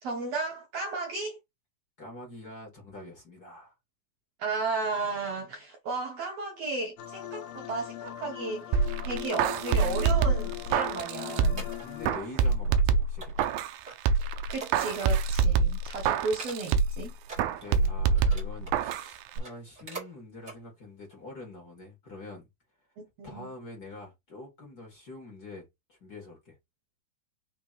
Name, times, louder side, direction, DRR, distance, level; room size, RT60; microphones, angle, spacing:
voice 1, 0.0-1.4 4.4-8.7 9.0-11.6 14.5-17.1 23.0-23.5, right 3 dB, 65° right, 1.8 m, -34 dB
voice 2, 2.0-3.8 11.5-13.4 17.4-22.9 23.2-26.6, left 2 dB, 35° left, 1.8 m, -45 dB
sound 1, 7.0-12.2, left 15 dB, 90° left, 2.4 m, -40 dB
sound 2, 8.7-11.7 12.0-13.8 14.1-17.0 17.4-19.1 19.4-19.5, right 5 dB, 85° right, 2.4 m, -26 dB
sound 3, 10.4-12.2 12.4-12.8 13.2-15.4 15.7-15.8 16.2-16.9 17.2-18.8 19.3-20.1 20.4-20.6 21.1-21.2, right 4 dB, 25° right, 1.7 m, -45 dB
6.0 x 3.4 x 2.5 m
omnidirectional pair, 4.0 m